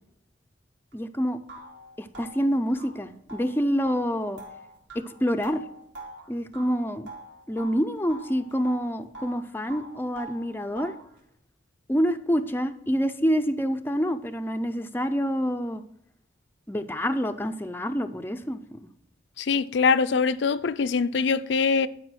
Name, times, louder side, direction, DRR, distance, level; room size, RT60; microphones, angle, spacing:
voice 1, 0.9-1.4 2.0-4.4 4.9-5.6 6.3-7.1 7.5-10.9 11.9-15.8 16.7-18.8, equal, 10° left, 0.4 m, -27 dB
sound 1, 0.9-1.0 1.5-7.8 8.1-9.4 9.7-11.1, right 1 dB, 70° right, 3.0 m, -44 dB
voice 2, 19.4-21.9, left 5 dB, 65° left, 0.5 m, -23 dB
11.5 x 5.4 x 6.2 m
head